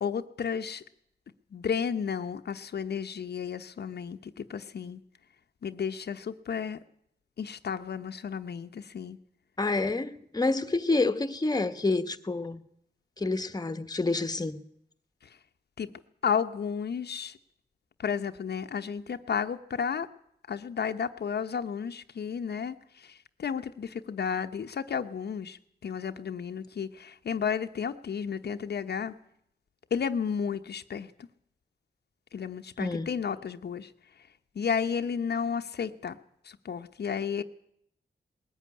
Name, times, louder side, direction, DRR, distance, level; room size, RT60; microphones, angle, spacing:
voice 1, 0.0-0.8 1.5-5.0 5.6-6.8 7.4-9.2 15.8-15.9 16.2-17.4 18.0-20.1 20.5-22.8 23.0-29.1 29.9-31.1 32.3-33.9 34.6-36.2 36.5-37.4, left 7 dB, 70° left, 1.0 m, -32 dB
voice 2, 9.6-12.6 13.2-14.6 32.8-33.1, left 3 dB, 20° left, 1.3 m, -28 dB
20.0 x 14.0 x 9.8 m
wide cardioid pair, 85°, 17 cm